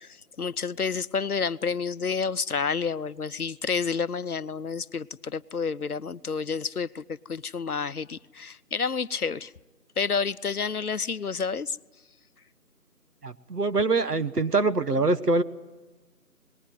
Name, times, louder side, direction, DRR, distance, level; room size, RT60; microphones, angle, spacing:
voice 1, 0.0-9.5 10.0-11.8, left 5 dB, 70° left, 15 dB, 0.8 m, -29 dB
voice 2, 13.2-15.4, right 3 dB, 80° right, 11 dB, 1.5 m, -24 dB
28.0 x 20.0 x 9.4 m, 1.2 s
figure-of-eight pair, 170°, 47 cm